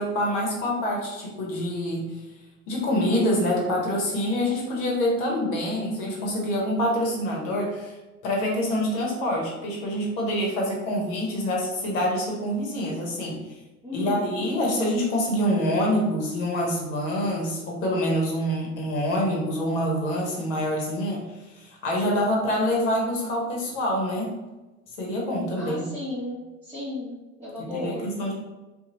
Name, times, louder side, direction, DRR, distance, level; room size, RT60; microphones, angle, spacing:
voice 1, 0.0-2.1 2.7-8.0 8.2-13.4 13.9-24.4 25.0-25.9 27.6-28.3, equal, 70° left, -2 dB, 1.0 m, -26 dB
voice 2, 13.8-14.5 25.6-28.1, left 2 dB, 5° right, -11 dB, 0.9 m, -34 dB
2.7 x 2.4 x 2.9 m, 1.1 s
hypercardioid pair, 70°, 41 cm